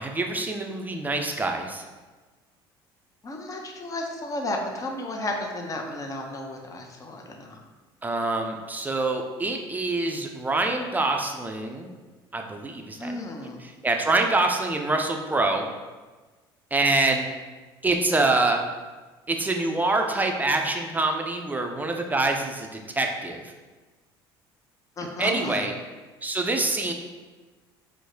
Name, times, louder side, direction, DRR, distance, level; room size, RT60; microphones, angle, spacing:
voice 1, 0.0-1.8 8.0-11.9 12.3-13.3 13.6-15.7 16.7-17.3 17.8-18.6 19.3-22.7 22.9-23.4 25.2-25.7 26.2-26.9, right 2 dB, 15° right, 3 dB, 0.5 m, -25 dB
voice 2, 3.2-7.6 13.0-13.6 25.0-25.6, left 1 dB, 25° left, 2 dB, 0.6 m, -33 dB
4.5 x 2.1 x 2.7 m, 1.3 s
hypercardioid pair, 70°, 12 cm